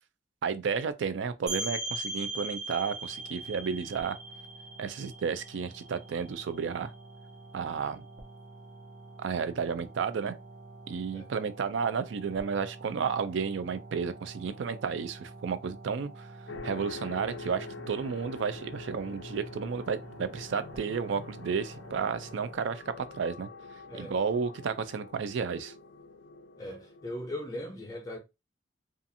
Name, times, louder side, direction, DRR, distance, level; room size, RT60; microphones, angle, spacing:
voice 1, 0.4-4.2 4.8-6.9 7.5-8.0 9.2-10.4 10.9-16.3 16.6-23.5 23.9-25.7, right 6 dB, 80° right, 0.4 m, -32 dB
sound 1, 1.5-6.9, right 2 dB, 20° right, 0.9 m, -39 dB
sound 2, 3.1-22.5, right 2 dB, 50° right, 0.7 m, -49 dB
sound 3, 16.5-27.2, left 4 dB, 70° left, 0.3 m, -46 dB
voice 2, 26.6-28.2, left 1 dB, 20° left, 0.6 m, -39 dB
2.5 x 2.4 x 2.6 m
head